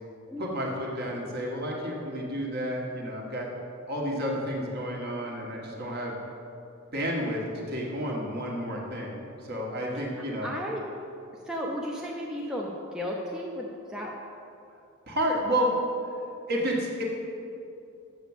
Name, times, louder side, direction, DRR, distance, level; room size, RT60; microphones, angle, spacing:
voice 1, 0.4-3.5 3.9-6.2 6.9-10.5 15.1-15.7 16.5-17.0, equal, 45° right, -1 dB, 1.5 m, -31 dB
voice 2, 10.2-10.8 11.5-14.1, equal, 5° right, -3 dB, 0.6 m, -34 dB
7.1 x 6.1 x 7.2 m, 2.6 s
head